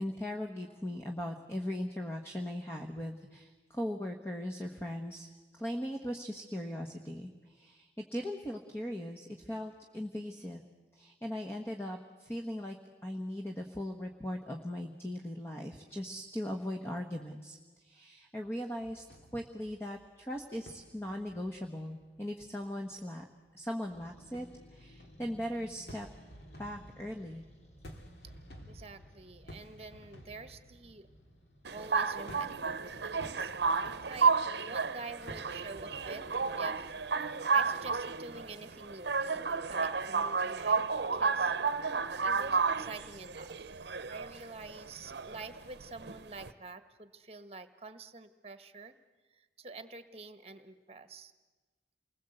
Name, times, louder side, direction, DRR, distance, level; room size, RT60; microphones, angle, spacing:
voice 1, 0.0-5.3 5.5-10.6 10.9-12.8 13.0-19.0 19.3-23.2 23.5-26.1 26.6-27.4, equal, 15° left, 2 dB, 1.3 m, -39 dB
sound 1, 18.7-23.1 23.4-24.1 24.3-36.8, equal, 65° left, 2.9 m, -54 dB
sound 2, 23.9-32.4, equal, 40° left, 2.2 m, -58 dB
voice 2, 28.7-31.1 31.7-33.5 34.1-34.4 34.6-36.3 36.5-36.9 37.5-41.5 41.9-43.7 44.0-48.9 49.3-51.3, right 3 dB, 35° right, 10 dB, 1.3 m, -47 dB
sound 3, 31.6-46.5, right 5 dB, 75° right, 0.8 m, -32 dB
28.5 x 21.0 x 7.9 m, 1.3 s
head